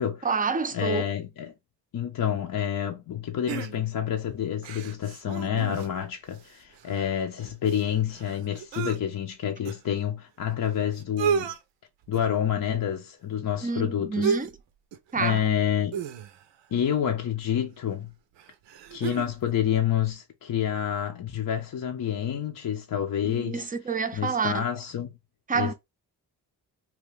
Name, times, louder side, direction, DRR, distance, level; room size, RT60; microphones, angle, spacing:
voice 1, 0.2-1.1 13.6-14.5 15.1-15.4 23.2-24.6 25.5-25.7, right 5 dB, 20° right, 0.5 m, -28 dB
voice 2, 0.7-1.5 1.9-11.5 12.1-14.3 15.1-16.0 16.7-18.1 18.9-23.7 24.1-25.1 25.5-25.7, left 9 dB, 50° left, 0.6 m, -28 dB
sound 1, 3.5-4.1 4.6-6.1 6.4-6.5 6.7-9.0 9.7-9.8 10.6-10.7 11.0-11.6 12.1-12.4 14.2-14.6 14.9-15.1 15.9-16.6 17.7-17.8 18.4-19.4 19.7-19.8, right 7 dB, 85° right, 0.6 m, -32 dB
2.9 x 2.2 x 3.3 m
cardioid pair, 55°, 43 cm